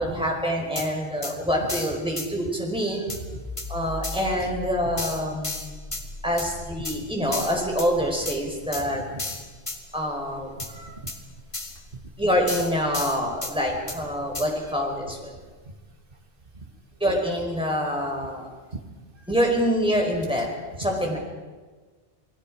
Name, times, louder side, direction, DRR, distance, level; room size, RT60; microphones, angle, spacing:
voice 1, 0.0-3.0 3.7-5.6 6.2-9.0 9.9-10.5 12.2-15.3 17.0-18.5 19.3-20.5 20.8-21.2, equal, 5° right, -1 dB, 4.8 m, -26 dB
sound 1, 0.8-0.9 1.2-1.3 1.7-2.3 3.1-3.2 3.6-3.7 4.0-4.3 5.0-6.0 6.4-6.5 6.8-7.0 7.3-7.9 8.3-8.4 8.7-8.8 9.2-9.8 10.6-10.7 11.1-11.2 11.5-11.8 12.5-13.5 13.9-14.0 14.3-14.5, left 2 dB, 30° left, 2.1 m, -33 dB
sound 2, 3.1-14.5, left 1 dB, 90° left, 3.7 m, -42 dB
voice 2, 8.7-9.4 10.5-11.1 18.7-18.8 19.2-19.3 20.8-20.9, right 3 dB, 55° right, 2 dB, 2.2 m, -40 dB
29.0 x 20.0 x 5.0 m, 1.3 s
omnidirectional pair, 1.1 m